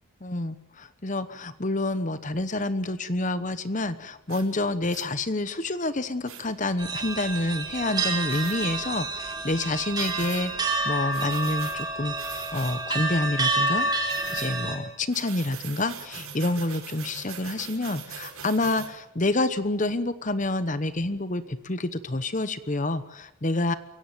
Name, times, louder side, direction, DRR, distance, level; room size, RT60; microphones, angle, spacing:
voice 1, 0.2-23.7, left 2 dB, 35° left, 13 dB, 1.0 m, -28 dB
sound 1, 4.3-4.5 4.9-5.1 6.3-6.4 8.3-8.6 9.9-10.5 11.1-11.8 12.2-12.8 14.1-14.5 15.1-18.9, right 7 dB, 75° right, 4.9 m, -41 dB
sound 2, 6.8-14.8, right 3 dB, 20° right, 4.0 m, -29 dB
23.5 x 17.5 x 9.3 m, 0.84 s
head